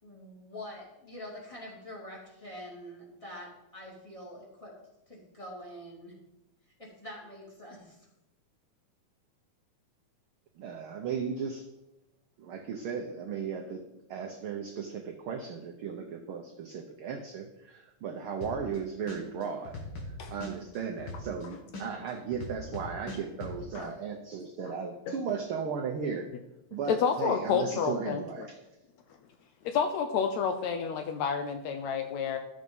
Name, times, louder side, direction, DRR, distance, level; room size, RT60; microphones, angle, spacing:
voice 1, 0.0-4.7 5.1-6.1 6.8-8.1, left 1 dB, 10° left, -3 dB, 2.2 m, -45 dB
voice 2, 10.6-11.6 12.4-13.8 14.1-19.8 20.3-26.3 26.7-28.5, right 6 dB, 80° right, 3 dB, 1.2 m, -36 dB
sound 1, 18.4-18.8 19.1-21.4 21.7-23.5, left 2 dB, 45° left, 2.3 m, -40 dB
voice 3, 26.9-28.5 29.7-32.4, left 7 dB, 75° left, 7 dB, 1.8 m, -29 dB
12.0 x 6.5 x 5.4 m, 0.92 s
omnidirectional pair, 3.5 m